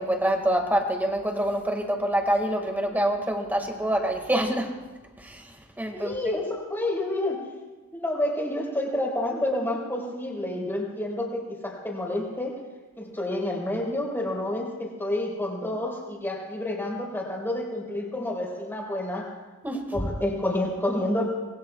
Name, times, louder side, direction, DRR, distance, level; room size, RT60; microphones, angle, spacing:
voice 1, 0.0-4.7 5.2-6.3 19.6-20.1, right 1 dB, 10° right, 3 dB, 2.0 m, -26 dB
voice 2, 5.9-7.4 7.9-12.6 13.0-19.3 19.9-21.2, left 1 dB, 10° left, -2 dB, 4.7 m, -29 dB
25.5 x 22.0 x 2.4 m, 1.2 s
head